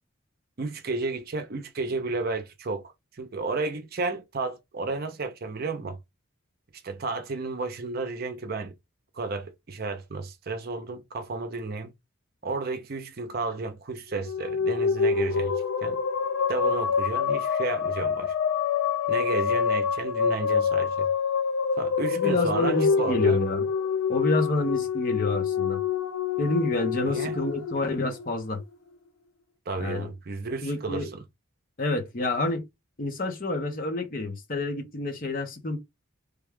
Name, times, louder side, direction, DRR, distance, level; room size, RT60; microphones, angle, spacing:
voice 1, 0.6-6.0 6.8-8.7 9.1-11.9 12.4-16.0 16.5-18.3 19.1-21.1 21.8-23.4 27.1-27.4 29.7-31.2, right 3 dB, 45° right, 0.6 m, -32 dB
sound 1, 14.1-28.6, left 6 dB, 85° left, 0.5 m, -26 dB
voice 2, 22.1-23.7 24.1-25.8 26.4-28.6 29.8-30.1 30.6-31.1 31.8-32.6 33.0-35.8, left 2 dB, 40° left, 0.8 m, -28 dB
3.4 x 2.3 x 3.5 m
head